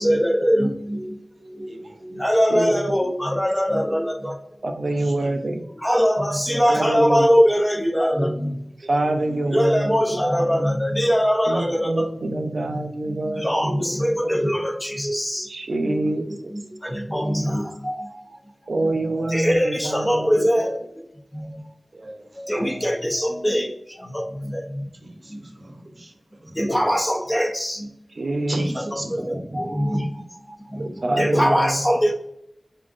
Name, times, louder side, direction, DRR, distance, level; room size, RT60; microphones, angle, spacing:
voice 1, 0.0-4.4 5.8-8.6 9.3-12.3 12.7-12.8 13.1-15.5 15.8-16.1 16.5-18.4 18.8-21.0 21.3-21.7 22.3-24.9 25.3-25.4 26.5-27.9 28.8-32.1, equal, 15° left, 3 dB, 0.6 m, -23 dB
voice 2, 1.7-2.0 5.0-5.4 9.0-9.6 17.4-17.6 21.9-22.5 24.9-26.6 28.5-29.9 30.8-31.4, right 1 dB, 50° right, 3 dB, 0.8 m, -37 dB
voice 3, 4.6-5.6 6.7-7.3 8.8-10.2 11.5-13.8 14.2-14.3 15.4-16.5 16.9-17.0 18.7-20.4 28.1-28.7 30.8-31.8, right 2 dB, 80° right, 4 dB, 0.5 m, -25 dB
4.8 x 3.7 x 2.5 m, 0.77 s
wide cardioid pair, 70°, 0 cm